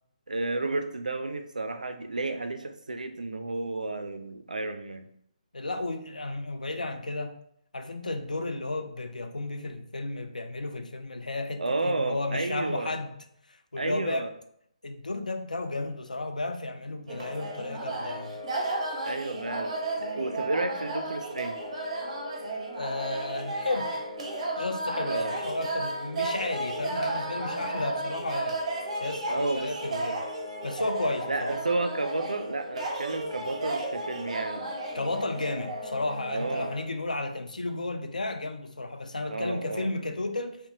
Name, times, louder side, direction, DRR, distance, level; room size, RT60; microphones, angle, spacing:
voice 1, 0.3-5.1 11.6-12.9 13.8-14.3 19.1-21.6 25.1-25.4 29.3-29.7 31.3-34.7 36.3-36.7 39.3-39.9, right 2 dB, 85° right, 0.3 m, -32 dB
voice 2, 5.5-7.4 7.7-13.1 13.5-14.3 14.8-18.4 22.7-23.9 24.6-28.6 29.0-30.2 30.6-31.6 34.9-40.6, left 2 dB, 90° left, 0.3 m, -33 dB
sound 1, 17.1-36.8, right 2 dB, 50° right, 0.7 m, -33 dB
2.8 x 2.1 x 2.6 m
figure-of-eight pair, 145°, 4 cm